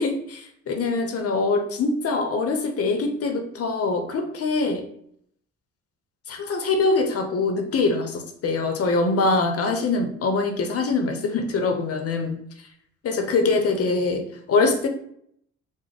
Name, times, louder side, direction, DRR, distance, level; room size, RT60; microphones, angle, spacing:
voice 1, 0.0-4.8 6.3-12.4 13.0-14.9, left 3 dB, 50° left, 4 dB, 0.6 m, -23 dB
3.9 x 2.0 x 3.2 m, 0.67 s
cardioid pair, 90°, 30 cm